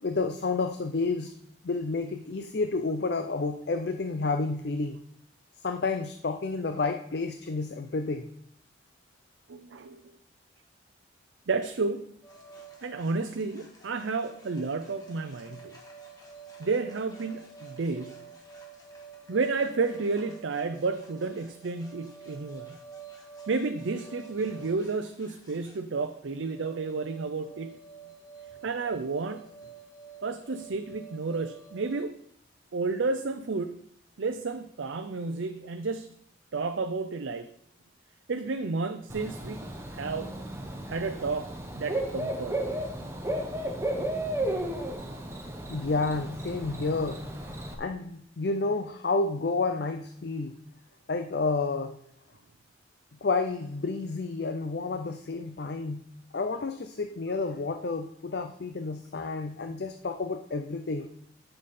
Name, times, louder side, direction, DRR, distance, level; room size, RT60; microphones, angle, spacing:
voice 1, 0.0-1.3 1.6-5.0 5.6-8.3 45.7-50.6 51.1-52.0 53.2-56.0 56.3-61.1, left 3 dB, 55° left, 7 dB, 0.5 m, -30 dB
voice 2, 9.5-10.1 11.5-12.0 12.8-15.8 16.6-18.3 19.3-22.8 23.5-27.8 28.6-29.4 30.2-32.1 32.7-33.8 34.2-36.1 36.5-37.5 38.3-40.3 40.9-42.6, right 4 dB, 80° right, 7 dB, 0.6 m, -31 dB
sound 1, 12.2-32.0, right 5 dB, 20° left, 1.7 m, -49 dB
Bird / Cricket, 39.1-47.7, right 1 dB, 15° right, 1.0 m, -34 dB
11.0 x 6.7 x 4.3 m, 0.68 s
head